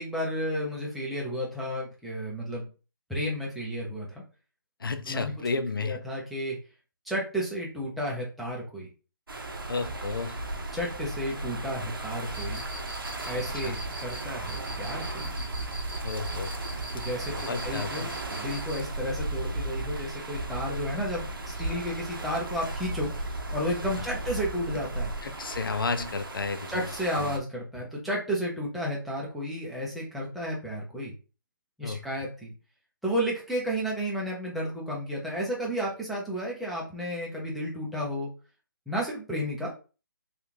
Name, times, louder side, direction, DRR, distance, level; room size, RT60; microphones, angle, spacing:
voice 1, 0.0-2.7 3.1-4.2 5.0-5.3 5.8-6.6 7.0-8.9 10.7-12.6 13.3-15.3 16.9-25.1 26.7-31.1 31.8-32.5 33.0-38.3 38.9-39.7, equal, ahead, 0.5 m, -32 dB
voice 2, 4.8-6.0 9.7-10.4 13.6-13.7 16.0-16.5 17.5-18.1 25.2-26.8 27.2-27.4 31.8-32.0, left 4 dB, 80° left, 0.5 m, -32 dB
sound 1, 9.3-27.4, right 2 dB, 85° right, 0.8 m, -35 dB
Cricket, 12.3-18.9, right 2 dB, 25° right, 0.8 m, -43 dB
3.4 x 2.4 x 2.8 m
hypercardioid pair, 155°, 11 cm